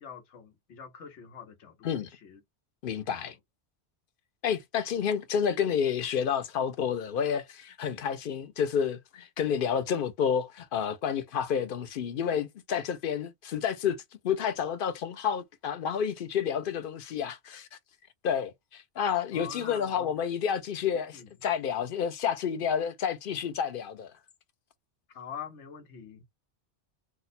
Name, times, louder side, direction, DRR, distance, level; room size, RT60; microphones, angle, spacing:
voice 1, 0.0-2.4 3.0-3.1 19.3-20.1 21.1-21.3 25.1-26.2, left 7 dB, 85° left, 1.2 m, -45 dB
voice 2, 2.8-3.4 4.4-17.7 18.2-24.1, left 7 dB, 60° left, 0.6 m, -30 dB
2.7 x 2.1 x 4.0 m
omnidirectional pair, 1.2 m